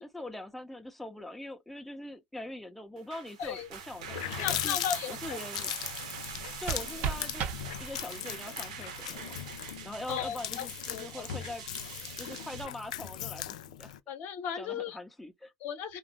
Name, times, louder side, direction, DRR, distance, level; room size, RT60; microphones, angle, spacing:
voice 1, 0.0-4.8 5.1-5.7 6.6-7.5 7.8-9.3 9.8-11.6 12.2-14.1 14.6-15.5, left 1 dB, 5° left, 0.7 m, -43 dB
sound 1, 3.0-12.6, right 7 dB, 85° right, 0.9 m, -44 dB
Water tap faucet, 3.5-3.6 3.9-14.0, left 11 dB, 90° left, 0.4 m, -38 dB
voice 2, 4.4-5.2 10.1-11.2 14.1-15.0 15.6-16.0, left 8 dB, 60° left, 0.8 m, -36 dB
sound 2, 6.2-8.3, right 7 dB, 55° right, 0.7 m, -36 dB
2.4 x 2.0 x 2.9 m
supercardioid pair, 90°, 4 cm